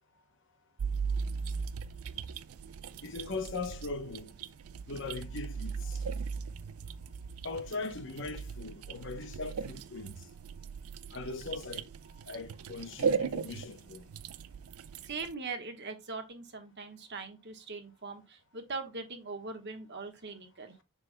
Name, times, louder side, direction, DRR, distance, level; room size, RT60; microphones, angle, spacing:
sound 1, 0.8-15.3, right 5 dB, 75° right, 0.4 m, -38 dB
voice 1, 3.0-4.3 4.9-6.0 7.4-10.1 11.1-11.9 12.3-14.0, left 3 dB, 55° left, 0.9 m, -39 dB
voice 2, 15.0-20.7, right 4 dB, 50° right, 1.2 m, -41 dB
7.3 x 6.2 x 2.2 m
head